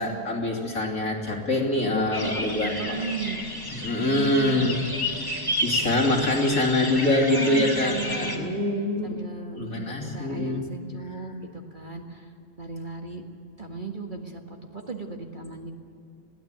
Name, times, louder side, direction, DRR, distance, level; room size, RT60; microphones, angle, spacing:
voice 1, 0.0-3.0 3.8-4.7 5.3-9.1 9.6-10.6, left 1 dB, 60° left, 0 dB, 3.4 m, -25 dB
sound 1, 2.1-8.4, left 1 dB, 15° left, 2.7 m, -31 dB
voice 2, 2.1-3.4 4.1-4.9 5.4-6.2 7.1-8.6 9.0-12.3 12.6-13.2 13.6-15.7, right 4 dB, 30° right, 2 dB, 1.8 m, -36 dB
21.5 x 16.5 x 9.1 m, 2.5 s
omnidirectional pair, 1.7 m